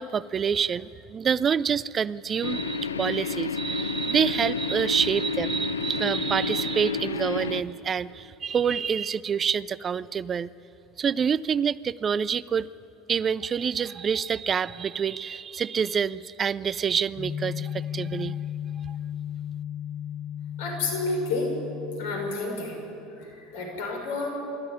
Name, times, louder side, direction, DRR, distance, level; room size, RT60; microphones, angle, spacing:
voice 1, 0.0-10.5 11.0-12.7 13.1-18.4 18.9-19.0, right 7 dB, 35° right, 20 dB, 0.4 m, -27 dB
sound 1, 2.4-7.6, left 4 dB, 85° left, 0.7 m, -30 dB
sound 2, 17.2-22.3, left 9 dB, 50° left, 6.2 m, -34 dB
voice 2, 20.6-21.5 22.0-22.8 23.2-24.3, left 3 dB, 65° left, 1 dB, 6.3 m, -30 dB
26.0 x 13.0 x 9.8 m, 2.9 s
figure-of-eight pair, 70°, 0 cm